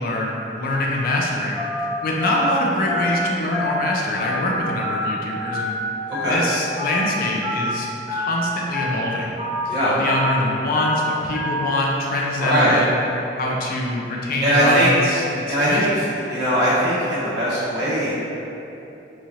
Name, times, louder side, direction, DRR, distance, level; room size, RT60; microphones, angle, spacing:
voice 1, 0.0-1.6 2.0-5.8 6.3-9.4 9.9-13.0 13.4-15.9, left 1 dB, 50° left, -2 dB, 0.4 m, -24 dB
Telephone, 1.6-1.8 2.2-2.4 2.9-3.1 3.5-3.8 4.2-4.4 4.8-5.1 5.5-5.7 6.1-6.4 6.8-7.0 7.4-7.7 8.1-8.3 8.7-9.0 9.4-9.6 10.0-10.3 10.7-10.9 11.3-11.6, left 2 dB, 5° right, 1.0 m, -27 dB
voice 2, 6.1-6.4 9.7-10.0 12.4-12.8 14.4-14.9 15.5-15.9 16.3-18.2, equal, 65° right, -11 dB, 1.1 m, -20 dB
3.0 x 2.4 x 2.7 m, 2.9 s
head